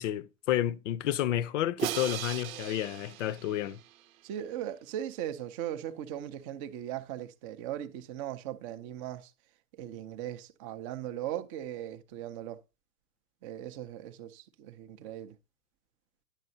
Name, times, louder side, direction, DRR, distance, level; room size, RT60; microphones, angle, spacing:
voice 1, 0.0-3.8, left 12 dB, 50° left, 0.7 m, -30 dB
Crash cymbal, 1.8-4.0, right 13 dB, 60° right, 0.7 m, -37 dB
voice 2, 4.2-9.3 9.7-12.6 13.4-15.4, right 11 dB, 20° right, 0.4 m, -38 dB
10.5 x 7.4 x 2.7 m
hypercardioid pair, 115°, 48 cm